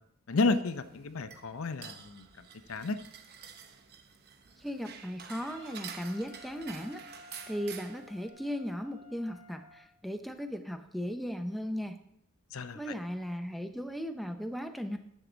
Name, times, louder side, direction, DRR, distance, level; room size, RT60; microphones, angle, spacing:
voice 1, 0.3-3.0 12.5-12.9, left 3 dB, 65° left, 11 dB, 0.6 m, -32 dB
sound 1, 0.6-8.3, right 7 dB, 45° right, 0.8 m, -49 dB
voice 2, 4.6-7.0 7.5-12.0 12.7-15.0, equal, ahead, 6 dB, 0.5 m, -37 dB
Wind instrument woodwind instrument, 5.4-9.9, equal, 80° right, 2.3 m, -53 dB
10.0 x 7.4 x 3.9 m, 0.76 s
head